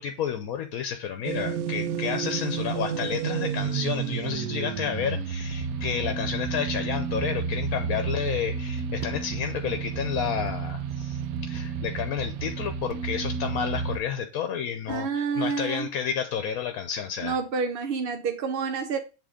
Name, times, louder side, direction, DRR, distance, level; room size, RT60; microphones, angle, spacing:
voice 1, 0.0-17.4, left 8 dB, 80° left, 1.2 m, -31 dB
sound 1, 1.2-14.0, right 6 dB, 90° right, 1.1 m, -31 dB
voice 2, 14.9-15.9 17.2-19.0, right 5 dB, 55° right, 0.6 m, -28 dB
7.4 x 3.4 x 5.0 m
omnidirectional pair, 1.5 m